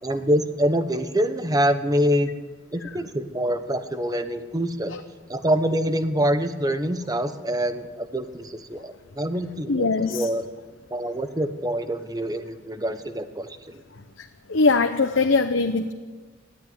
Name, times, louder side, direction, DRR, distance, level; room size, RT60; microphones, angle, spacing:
voice 1, 0.0-2.3 2.7-4.9 5.3-10.4 10.9-13.8, equal, 20° right, 10 dB, 1.1 m, -25 dB
voice 2, 9.7-10.3 14.5-15.9, left 3 dB, 90° left, 6 dB, 1.0 m, -21 dB
19.0 x 14.0 x 9.7 m, 1.4 s
head